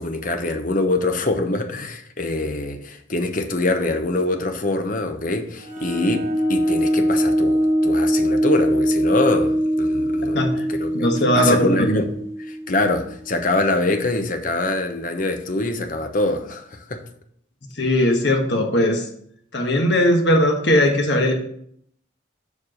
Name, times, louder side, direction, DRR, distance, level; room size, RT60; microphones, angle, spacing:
voice 1, 0.0-10.4 10.7-11.1 11.3-12.1 12.4-17.0, left 2 dB, 40° left, 0.9 m, -24 dB
sound 1, 5.6-13.1, equal, 45° right, 3.8 m, -22 dB
voice 2, 10.9-12.1 17.8-19.1 19.5-21.3, left 1 dB, 60° left, 1.5 m, -19 dB
7.3 x 4.7 x 6.5 m
head